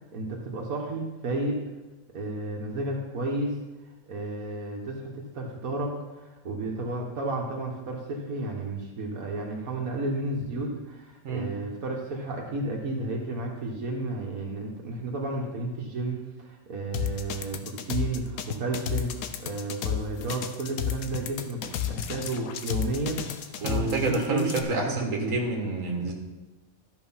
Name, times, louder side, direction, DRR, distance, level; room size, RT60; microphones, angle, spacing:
voice 1, 0.1-1.6 2.1-3.6 4.1-21.6 21.9-25.4, right 2 dB, 80° right, 0 dB, 1.8 m, -32 dB
sound 1, 16.9-24.6, left 10 dB, 90° left, 1.2 m, -32 dB
voice 2, 23.6-26.1, right 3 dB, 65° right, 0 dB, 1.8 m, -28 dB
12.5 x 5.3 x 5.6 m, 1.1 s
omnidirectional pair, 1.5 m